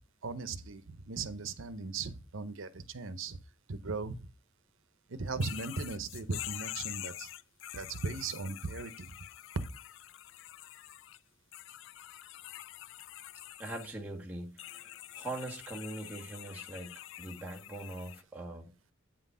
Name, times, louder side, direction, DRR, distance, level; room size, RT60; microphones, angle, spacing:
voice 1, 0.2-3.4 3.7-4.2 5.1-7.3 7.7-9.1, right 3 dB, 80° right, 0.8 m, -38 dB
sound 1, 5.4-11.2 11.5-13.9 14.6-18.2, left 14 dB, 65° left, 0.3 m, -46 dB
voice 2, 13.6-18.7, right 2 dB, 10° right, 1.5 m, -42 dB
8.9 x 3.8 x 5.5 m
head